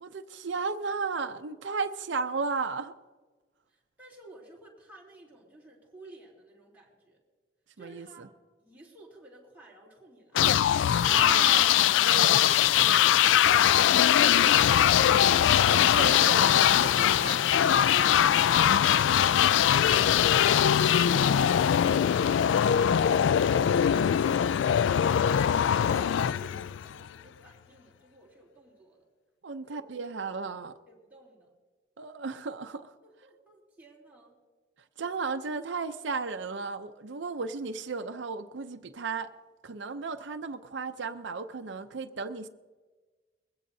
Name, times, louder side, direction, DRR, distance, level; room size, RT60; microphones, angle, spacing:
voice 1, 0.0-2.9 7.8-8.3 11.0-11.7 12.0-12.4 12.7-13.1 15.7-17.4 19.9-20.2 29.4-30.7 32.0-32.9 35.0-39.3 39.6-42.5, right 4 dB, 80° right, 7 dB, 0.6 m, -35 dB
voice 2, 3.7-7.2 7.8-8.3 8.6-10.5 24.6-29.0 29.7-30.1 30.9-31.5 33.0-34.4, right 2 dB, 10° right, -4 dB, 3.3 m, -53 dB
sound 1, 10.4-27.1, left 9 dB, 90° left, 0.3 m, -22 dB
21.5 x 16.0 x 2.7 m, 1.3 s
head